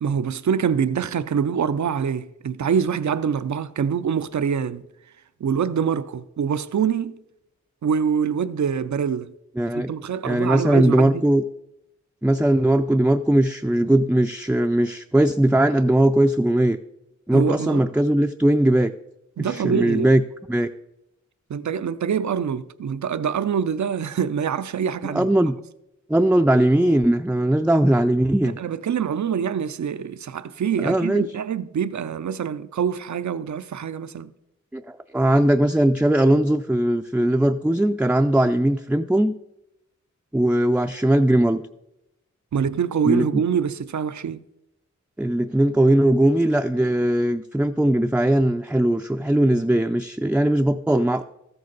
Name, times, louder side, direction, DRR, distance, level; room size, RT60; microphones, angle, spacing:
voice 1, 0.0-4.8 5.4-7.2 7.8-9.3 9.7-11.2 17.3-17.8 19.4-20.1 21.5-25.3 28.4-34.3 42.5-44.4, right 7 dB, 70° right, 0.6 m, -25 dB
voice 2, 9.6-9.9 10.2-11.4 12.2-16.8 17.3-18.9 19.4-20.2 20.5-20.7 25.0-25.6 26.1-28.6 30.8-31.3 34.7-39.3 40.3-41.6 43.0-43.4 45.2-51.2, right 1 dB, 5° right, 0.4 m, -19 dB
13.5 x 7.9 x 4.0 m
cardioid pair, 40°, 30 cm